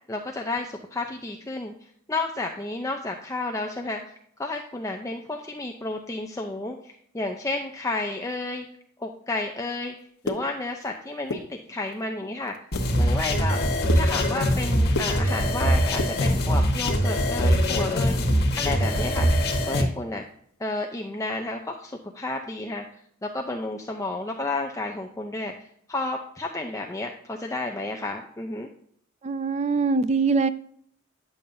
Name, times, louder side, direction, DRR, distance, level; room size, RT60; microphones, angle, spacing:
voice 1, 0.1-4.1 4.4-8.7 9.0-10.0 10.2-12.5 13.0-13.6 13.9-19.3 19.6-20.2 20.6-22.9 23.2-28.7, left 2 dB, 15° left, 2 dB, 0.5 m, -31 dB
sound 1, 10.0-10.9 11.2-12.0 12.4-12.9 13.3-15.6 15.9-17.1 17.4-19.0 19.2-19.3 19.7-19.9 20.3-20.5, left 2 dB, 85° left, 1.1 m, -34 dB
sound 2, 12.7-19.8, equal, 50° left, 1.4 m, -23 dB
voice 2, 29.2-30.5, right 4 dB, 30° right, 14 dB, 0.4 m, -23 dB
10.0 x 7.0 x 2.6 m, 0.65 s
head